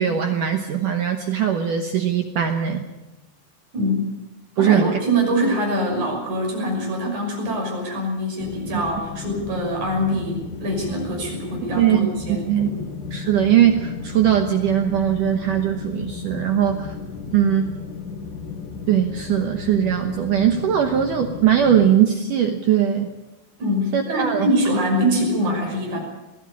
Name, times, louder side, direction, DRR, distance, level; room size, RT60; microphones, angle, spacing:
voice 1, 0.0-2.8 4.6-5.0 11.7-12.1 12.5-12.7 13.1-17.0 17.3-17.7 18.9-23.1 23.9-24.5, right 9 dB, 70° right, 5 dB, 2.1 m, -20 dB
voice 2, 3.7-4.1 4.6-12.9 23.6-26.0, equal, 45° right, 0 dB, 7.2 m, -24 dB
sound 1, 8.4-21.9, left 5 dB, 75° left, 3.8 m, -34 dB
21.0 x 15.5 x 8.5 m, 1.1 s
omnidirectional pair, 5.1 m